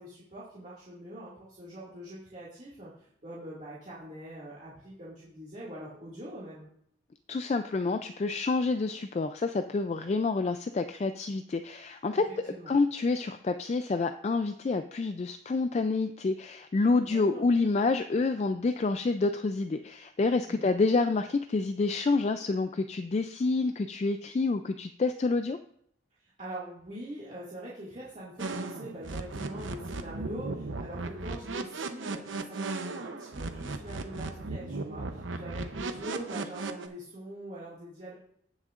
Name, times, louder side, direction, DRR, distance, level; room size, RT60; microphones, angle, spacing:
voice 1, 0.0-6.7 12.1-12.8 17.0-17.5 20.5-20.7 26.2-38.1, right 1 dB, 40° right, -8 dB, 2.1 m, -43 dB
voice 2, 7.3-12.2 12.7-25.6, left 3 dB, 35° left, 8 dB, 0.3 m, -28 dB
sound 1, 28.4-36.9, right 3 dB, 90° right, 0.8 m, -36 dB
17.5 x 6.3 x 2.5 m, 0.68 s
head